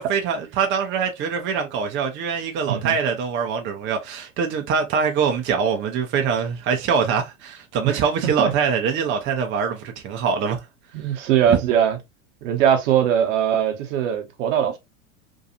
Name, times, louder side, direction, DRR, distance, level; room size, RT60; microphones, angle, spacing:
voice 1, 0.0-10.6 11.1-11.2, right 6 dB, 30° right, 0.5 m, -24 dB
voice 2, 7.8-8.5 10.9-12.0 12.4-14.8, right 9 dB, 65° right, 0.9 m, -21 dB
2.6 x 2.3 x 2.7 m
hypercardioid pair, 95°, 42 cm